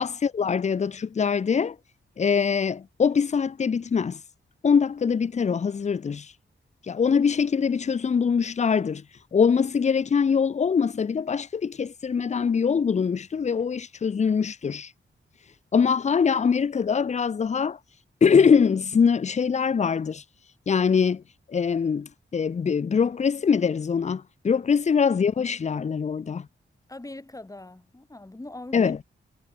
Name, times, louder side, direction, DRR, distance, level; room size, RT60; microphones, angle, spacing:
voice 1, 0.0-1.8 2.2-4.2 4.6-6.3 6.9-9.0 9.3-14.9 15.7-17.8 18.2-20.2 20.7-21.2 21.5-26.5 28.7-29.0, left 6 dB, 35° left, 0.5 m, -23 dB
voice 2, 26.9-29.0, left 2 dB, 15° left, 2.5 m, -41 dB
wide cardioid pair, 105°, 21 cm